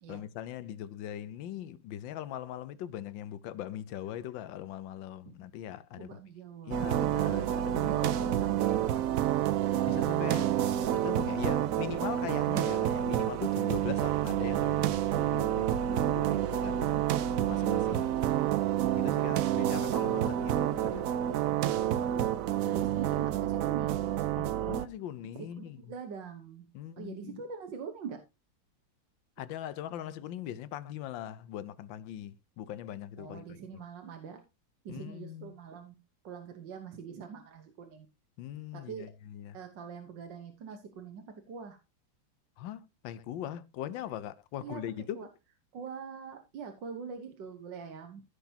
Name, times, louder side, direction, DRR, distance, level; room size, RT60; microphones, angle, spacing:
voice 1, 0.1-6.2 6.7-8.1 9.9-10.4 10.9-17.0 17.5-18.4 18.9-21.1 24.4-25.9 26.7-27.4 29.4-33.8 34.9-35.5 38.4-39.6 42.6-45.3, left 11 dB, 75° left, 1.4 m, -41 dB
voice 2, 6.0-6.9 7.9-9.3 10.2-10.7 22.6-24.1 25.4-26.7 27.0-28.2 33.2-34.4 34.9-36.0 36.2-38.1 38.7-39.1 39.5-41.8 44.6-44.8 45.2-45.3 45.7-48.2, right 6 dB, 70° right, 1.7 m, -43 dB
sound 1, 6.7-24.9, right 12 dB, 85° right, 0.7 m, -29 dB
14.5 x 6.0 x 2.8 m
omnidirectional pair, 2.1 m